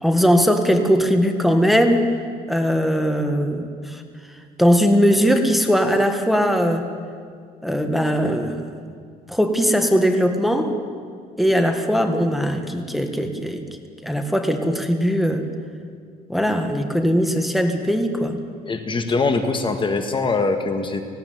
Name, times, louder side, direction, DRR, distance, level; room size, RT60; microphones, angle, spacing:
voice 1, 0.0-2.1 2.5-4.0 4.6-6.8 7.6-8.7 9.3-10.7 11.4-13.8 14.0-15.4 16.3-18.4, equal, ahead, 5 dB, 1.6 m, -19 dB
voice 2, 18.7-21.0, left 3 dB, 30° left, 7 dB, 1.6 m, -22 dB
18.5 x 16.5 x 9.5 m, 2.1 s
cardioid pair, 110°, 17 cm